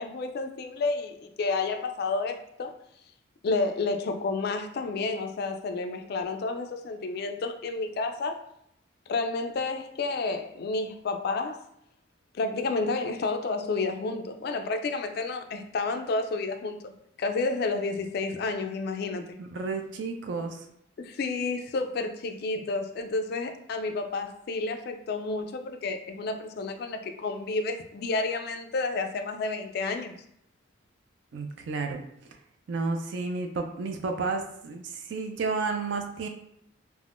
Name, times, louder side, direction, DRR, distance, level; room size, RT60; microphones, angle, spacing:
voice 1, 0.0-2.7 3.4-8.4 9.1-11.6 12.3-16.9 17.2-19.3 21.0-30.2, left 3 dB, 50° left, 6 dB, 0.3 m, -30 dB
voice 2, 19.4-20.6 31.3-32.0 32.7-36.3, right 4 dB, 60° right, 5 dB, 0.4 m, -31 dB
3.4 x 2.1 x 2.4 m, 0.75 s
head